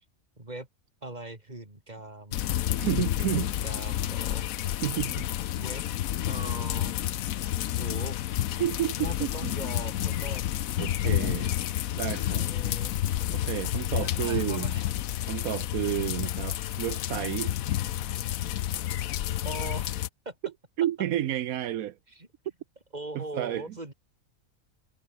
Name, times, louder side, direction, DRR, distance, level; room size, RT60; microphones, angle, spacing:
voice 1, 0.4-0.7 1.0-2.4 3.2-4.5 5.5-5.8 6.2-7.0 7.8-8.2 9.0-10.5 11.0-11.3 12.4-13.0 14.0-14.8 19.4-20.4 22.1-22.3 22.9-23.9, right 2 dB, 30° right, 4.0 m, -41 dB
sound 1, 2.3-20.1, left 12 dB, 75° left, 1.1 m, -30 dB
voice 2, 2.8-3.5 4.8-5.3 8.6-9.3 10.8-11.5 12.0-12.5 13.3-14.7 15.3-17.6 20.8-22.0 23.1-23.7, right 12 dB, 85° right, 1.2 m, -30 dB
omnidirectional pair, 1.5 m